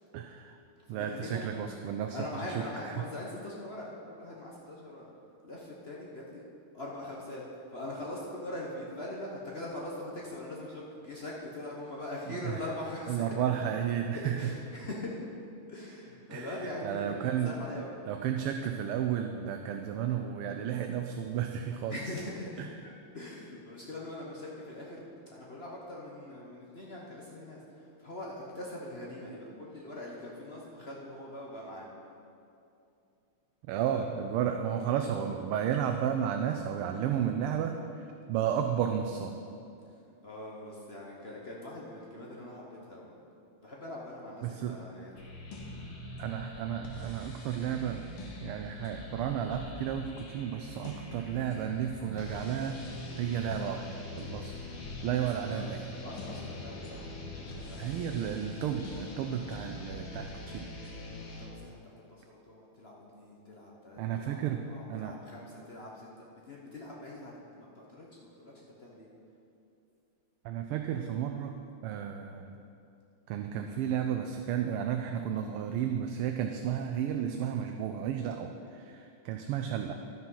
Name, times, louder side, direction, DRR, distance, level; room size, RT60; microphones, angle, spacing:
voice 1, 0.1-0.6 0.9-2.2 2.8-3.0 12.5-12.6 13.1-14.4 16.3-16.5 16.8-17.5 18.1-21.9 22.6-22.7 33.7-39.3 44.4-44.8 46.2-48.1 48.4-52.8 53.1-54.5 55.0-56.0 57.8-60.7 64.0-65.1 70.4-71.5 71.8-72.5 73.3-79.9, right 9 dB, 80° right, 5 dB, 1.5 m, -33 dB
voice 2, 0.9-1.4 2.1-5.1 5.4-6.4 6.7-7.4 7.7-13.2 13.7-13.8 14.1-15.2 15.7-18.0 21.9-25.0 25.3-31.9 33.9-34.0 39.8-43.2 43.6-45.1 55.5-55.7 56.0-57.1 57.4-58.0 61.1-69.1, left 1 dB, 45° left, -4 dB, 0.8 m, -42 dB
sound 1, 45.2-61.5, left 2 dB, 80° left, 2.3 m, -43 dB
12.0 x 5.9 x 5.6 m, 2.6 s
omnidirectional pair, 2.4 m